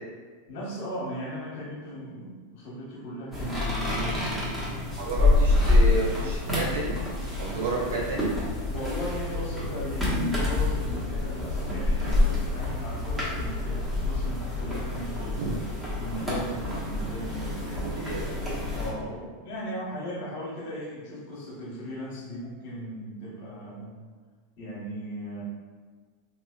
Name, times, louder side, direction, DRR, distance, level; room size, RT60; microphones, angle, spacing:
voice 1, 0.5-4.5 8.7-18.1 18.7-24.0 24.6-25.4, equal, 55° left, -4 dB, 1.1 m, -37 dB
sound 1, 3.3-18.9, left 2 dB, 5° right, 1.2 m, -27 dB
voice 2, 5.0-7.0 7.4-8.3 15.2-15.5 17.7-18.2, right 3 dB, 70° right, -5 dB, 0.8 m, -31 dB
3.2 x 2.9 x 2.3 m, 1.5 s
figure-of-eight pair, 90°, 0 cm